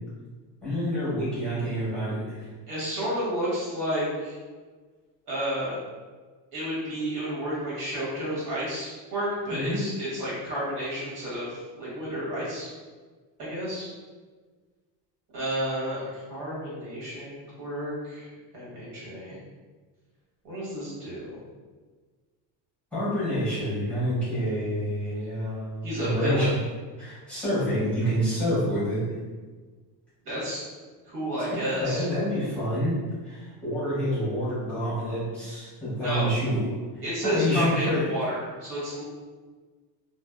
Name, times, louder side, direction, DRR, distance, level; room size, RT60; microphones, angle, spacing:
voice 1, 0.6-2.5 9.5-9.8 22.9-26.5 27.0-29.0 31.5-33.0 33.2-38.1, equal, 5° left, -13 dB, 1.0 m, -28 dB
voice 2, 2.7-4.4 5.3-5.8 6.5-12.7 13.4-13.9 15.3-18.3 18.5-19.4 20.4-21.4 25.8-26.5 30.2-30.6 31.0-32.1 36.0-36.3 37.0-39.0, equal, 65° right, -7 dB, 1.4 m, -31 dB
2.6 x 2.2 x 2.2 m, 1.4 s
cardioid pair, 170°, 42 cm